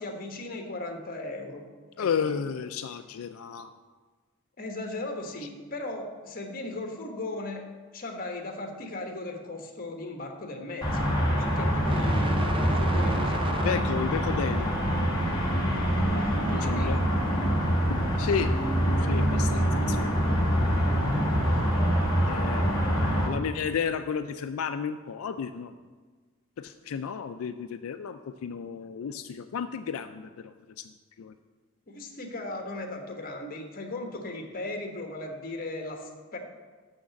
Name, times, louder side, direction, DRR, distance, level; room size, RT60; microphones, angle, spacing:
voice 1, 0.0-1.6 2.0-2.4 4.6-7.6 7.9-11.1 11.4-13.4 16.1-17.0 31.9-36.4, left 2 dB, 45° left, 3 dB, 1.3 m, -37 dB
voice 2, 2.0-3.7 13.6-14.7 16.5-17.0 17.9-18.5 19.0-20.6 22.3-22.7 23.2-25.7 26.6-30.9 31.2-31.3, left 7 dB, 90° left, 8 dB, 0.4 m, -32 dB
sound 1, 10.8-23.3, equal, 20° left, 1.9 m, -25 dB
sound 2, 11.9-17.0, right 3 dB, 25° right, 0.4 m, -39 dB
6.6 x 6.3 x 7.1 m, 1.4 s
head